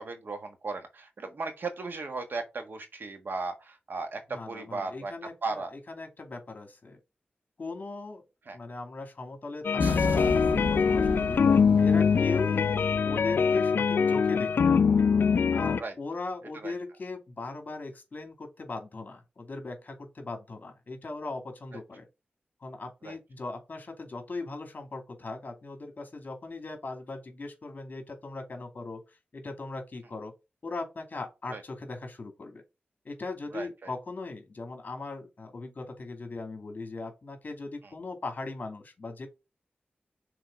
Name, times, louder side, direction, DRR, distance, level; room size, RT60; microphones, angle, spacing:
voice 1, 0.0-5.1 5.4-5.7 8.5-8.6 15.8-15.9 16.6-16.7 23.0-23.2 31.5-31.6 33.5-33.9, right 3 dB, 65° right, 1.5 m, -36 dB
voice 2, 4.3-7.0 7.6-8.2 8.5-14.8 15.5-22.1 22.6-30.3 30.6-32.6 33.0-39.3, left 3 dB, 50° left, 2.3 m, -39 dB
sound 1, 9.6-15.8, left 6 dB, 75° left, 0.4 m, -23 dB
sound 2, 9.8-13.9, equal, 45° right, 1.8 m, -36 dB
6.4 x 4.0 x 5.3 m
wide cardioid pair, 90°, 4 cm